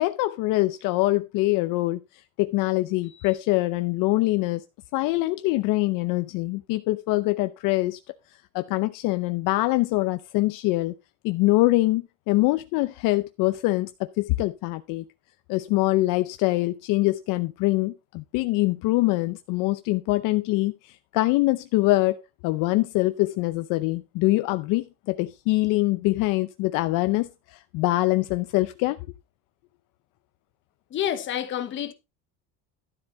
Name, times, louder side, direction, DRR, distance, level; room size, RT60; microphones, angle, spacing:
voice 1, 0.0-2.0 2.4-4.6 4.9-8.1 8.5-10.9 11.2-15.0 15.5-29.0, left 19 dB, 60° left, 0.7 m, -24 dB
voice 2, 30.9-31.9, left 10 dB, 30° left, 1.2 m, -28 dB
12.5 x 7.5 x 3.8 m
cardioid pair, 170°, 37 cm